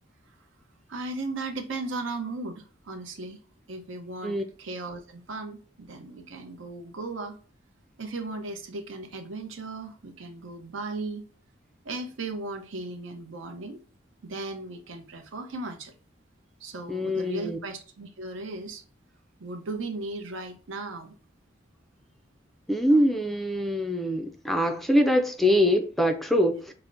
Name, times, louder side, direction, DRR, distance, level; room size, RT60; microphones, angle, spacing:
voice 1, 0.9-3.4 3.7-7.4 8.0-11.3 11.8-13.8 14.2-15.9 16.6-18.8 19.4-21.1, right 3 dB, 85° right, 5 dB, 0.7 m, -36 dB
voice 2, 16.9-17.6 22.7-26.7, equal, ahead, 5 dB, 0.3 m, -24 dB
5.6 x 2.0 x 2.5 m, 0.39 s
head